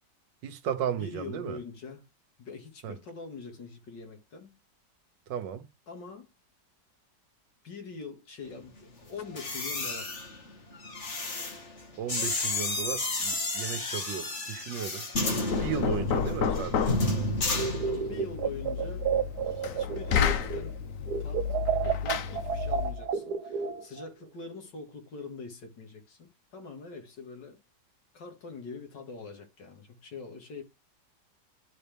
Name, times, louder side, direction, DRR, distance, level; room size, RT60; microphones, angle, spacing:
voice 1, 0.4-1.6 2.8-2.9 5.3-5.6 12.0-15.0 15.6-17.0, right 9 dB, 85° right, 1.6 m, -35 dB
voice 2, 0.9-2.0 2.4-4.6 5.9-6.3 7.6-10.2 17.9-19.1 19.4-20.8 21.2-21.4 21.8-27.6 28.1-30.6, left 4 dB, 80° left, 2.7 m, -43 dB
sound 1, 9.2-18.3 18.6-18.9, left 2 dB, 40° left, 2.0 m, -32 dB
Knock, 15.1-23.0, left 7 dB, 55° left, 1.0 m, -31 dB
sound 2, 17.5-20.8 21.1-24.1, right 7 dB, 70° right, 1.3 m, -31 dB
12.0 x 4.2 x 3.4 m
omnidirectional pair, 1.9 m